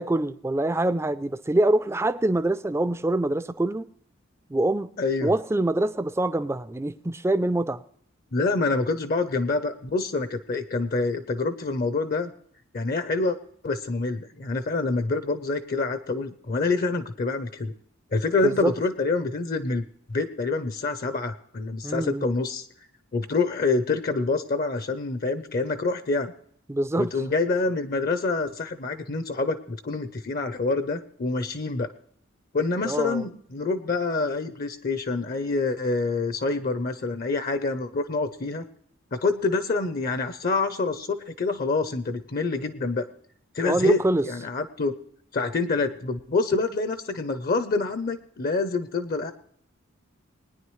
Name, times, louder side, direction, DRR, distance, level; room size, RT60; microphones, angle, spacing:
voice 1, 0.0-3.9 4.5-4.9 5.2-7.8 18.4-18.7 21.8-22.3 26.7-27.1 32.8-33.2 43.6-44.2, right 1 dB, 15° right, 0.4 m, -24 dB
voice 2, 5.0-5.3 8.3-12.3 12.7-13.4 13.6-17.7 18.1-19.8 20.1-22.7 23.1-26.3 27.0-31.9 32.5-38.6 39.1-43.1 43.5-44.9 45.3-49.3, left 3 dB, 45° left, 0.6 m, -26 dB
21.0 x 9.7 x 3.2 m
head